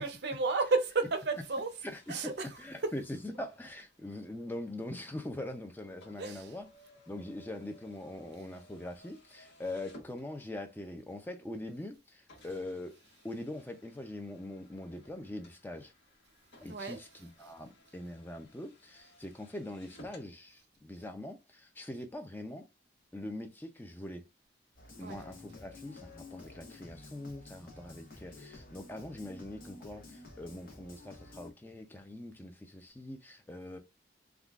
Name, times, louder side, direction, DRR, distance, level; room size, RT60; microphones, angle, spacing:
voice 1, 0.0-3.0 6.2-6.5 16.7-17.5 25.0-25.2, right 3 dB, 65° right, 0.6 m, -33 dB
sound 1, 1.3-10.8 11.5-11.6 12.3-20.3, left 1 dB, 80° left, 1.1 m, -60 dB
voice 2, 1.8-6.7 7.1-13.0 13.2-15.9 16.6-22.7 23.1-24.2 25.0-33.8, left 1 dB, 10° left, 0.4 m, -43 dB
sound 2, 24.8-31.5, left 2 dB, 50° left, 0.8 m, -51 dB
3.6 x 2.3 x 2.3 m
head